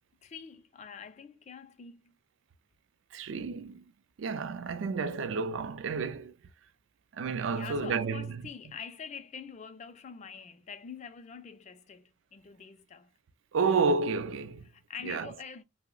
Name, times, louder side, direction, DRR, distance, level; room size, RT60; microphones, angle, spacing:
voice 1, 0.2-2.2 7.5-13.1 14.6-15.6, left 6 dB, 35° left, 0.3 m, -45 dB
voice 2, 3.1-3.8 4.2-6.3 7.2-8.3 13.5-14.7 15.0-15.3, right 4 dB, 85° right, 0.4 m, -30 dB
2.7 x 2.0 x 3.7 m
head